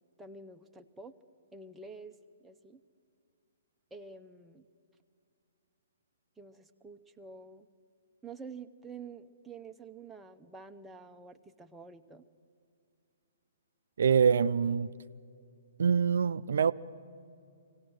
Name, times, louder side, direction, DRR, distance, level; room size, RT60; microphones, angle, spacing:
voice 1, 0.2-1.1 1.5-2.1 2.4-2.8 3.9-4.7 6.4-7.7 8.2-12.2, right 4 dB, 5° right, 0.7 m, -48 dB
voice 2, 14.0-14.9 15.8-16.7, right 6 dB, 70° right, 0.4 m, -25 dB
24.0 x 17.0 x 6.4 m
hypercardioid pair, 135°, 0 cm